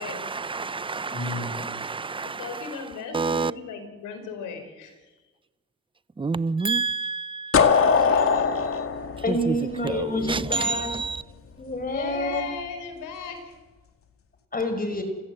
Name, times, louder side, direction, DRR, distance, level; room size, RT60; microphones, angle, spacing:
voice 1, 0.0-2.8 3.1-3.5 6.2-7.9 9.3-9.6 9.8-11.2, right 4 dB, 15° right, 0.7 m, -29 dB
voice 2, 1.1-1.7 7.9-8.9 9.2-10.9 11.6-12.4 14.5-15.0, left 1 dB, 30° left, 5.2 m, -29 dB
voice 3, 2.2-5.0 8.0-8.2 11.9-13.6, left 5 dB, 90° left, 4.4 m, -36 dB
sound 1, 7.5-10.4, left 6 dB, 45° left, 2.2 m, -21 dB
28.5 x 16.0 x 7.9 m
cardioid pair, 90°, 30 cm